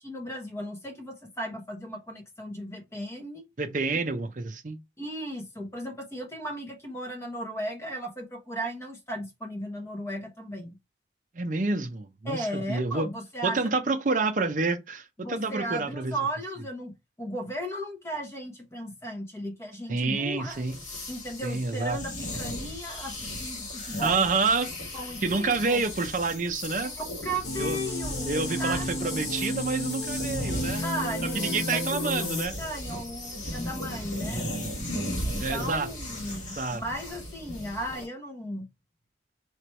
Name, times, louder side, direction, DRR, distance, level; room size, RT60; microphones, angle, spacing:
voice 1, 0.0-3.4 5.0-10.8 12.2-13.6 14.1-14.2 15.2-20.6 21.1-24.3 24.9-25.8 26.8-29.3 30.8-32.3 32.6-34.5 35.2-38.7, right 1 dB, 15° left, 1.1 m, -36 dB
voice 2, 3.6-4.8 11.3-13.1 13.4-16.1 19.9-20.8 21.4-22.0 24.0-24.7 25.2-26.9 27.6-27.8 28.3-30.8 31.3-32.6 35.4-35.9 36.6-36.8, right 3 dB, 45° right, 0.6 m, -28 dB
sound 1, 20.5-38.0, left 1 dB, 40° left, 1.5 m, -37 dB
sound 2, 27.4-32.5, left 1 dB, 60° left, 1.2 m, -32 dB
3.2 x 3.0 x 4.4 m
head